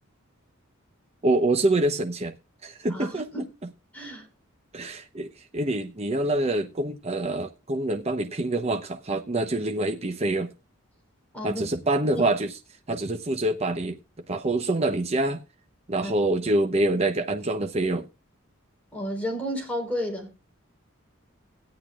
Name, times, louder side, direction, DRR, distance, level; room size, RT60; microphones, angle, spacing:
voice 1, 1.2-2.3 2.6-3.3 4.7-10.5 11.4-12.5 12.9-14.0 14.3-15.4 15.9-18.1, right 2 dB, 30° right, 0.8 m, -26 dB
voice 2, 2.9-3.4 3.9-4.3 11.3-11.7 12.1-12.3 16.0-16.1 18.9-20.3, equal, 5° left, 4.0 m, -32 dB
17.0 x 10.5 x 2.4 m
head